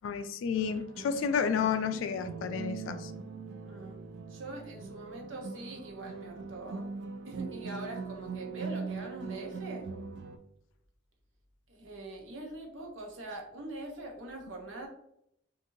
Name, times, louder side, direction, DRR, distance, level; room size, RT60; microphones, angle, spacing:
voice 1, 0.0-3.1, left 6 dB, 85° left, 11 dB, 0.3 m, -31 dB
sound 1, 0.5-10.4, right 4 dB, 60° right, 0.3 m, -41 dB
voice 2, 3.6-4.0 4.3-6.9 7.2-9.9 11.7-14.9, right 2 dB, 85° right, 1 dB, 0.8 m, -43 dB
2.9 x 2.5 x 2.6 m, 0.76 s
head